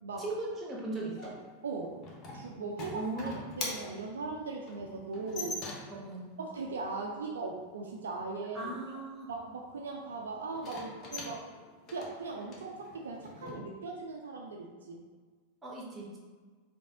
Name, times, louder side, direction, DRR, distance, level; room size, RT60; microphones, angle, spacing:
voice 1, 0.2-1.3 2.9-3.4 5.9-6.2 8.5-9.3 15.6-16.2, right 2 dB, 15° right, -3 dB, 1.2 m, -38 dB
sound 1, 1.2-6.1 10.5-13.6, left 2 dB, 30° left, 1.0 m, -43 dB
voice 2, 1.6-2.0 2.3-5.6 6.4-8.7 9.3-11.5 11.9-15.0, right 3 dB, 65° right, 1 dB, 0.4 m, -39 dB
5.2 x 2.7 x 3.6 m, 1.5 s
figure-of-eight pair, 90°, 0 cm